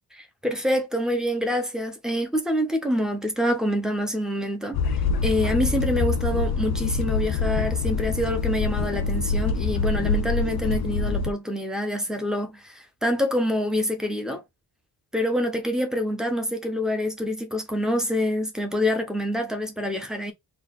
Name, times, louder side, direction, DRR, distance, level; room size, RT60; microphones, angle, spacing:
voice 1, 0.1-14.4 15.1-20.3, equal, ahead, 0.7 m, -26 dB
sound 1, 4.7-11.3, left 4 dB, 65° left, 0.5 m, -25 dB
3.8 x 2.3 x 3.5 m
wide cardioid pair, 170°, 41 cm